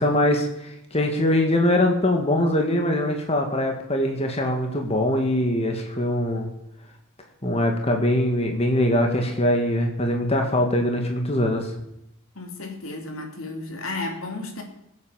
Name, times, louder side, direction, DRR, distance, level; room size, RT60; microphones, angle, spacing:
voice 1, 0.0-6.5 7.4-11.7, left 1 dB, 30° left, 3 dB, 1.9 m, -22 dB
voice 2, 12.3-14.6, left 2 dB, 80° left, 3 dB, 3.1 m, -33 dB
20.5 x 8.3 x 7.5 m, 0.84 s
head